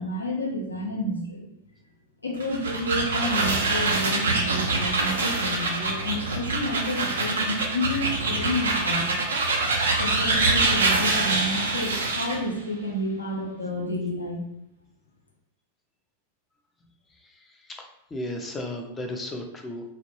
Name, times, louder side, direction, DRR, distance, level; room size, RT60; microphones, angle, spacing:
voice 1, 0.0-1.4 2.2-9.1 10.0-14.4, left 1 dB, 80° left, -1 dB, 0.5 m, -30 dB
sound 1, 2.3-12.4, right 3 dB, 70° right, 0.4 m, -25 dB
voice 2, 17.7-19.8, left 1 dB, 15° left, 3 dB, 0.4 m, -34 dB
2.1 x 2.0 x 3.0 m, 0.79 s
figure-of-eight pair, 90°, 0 cm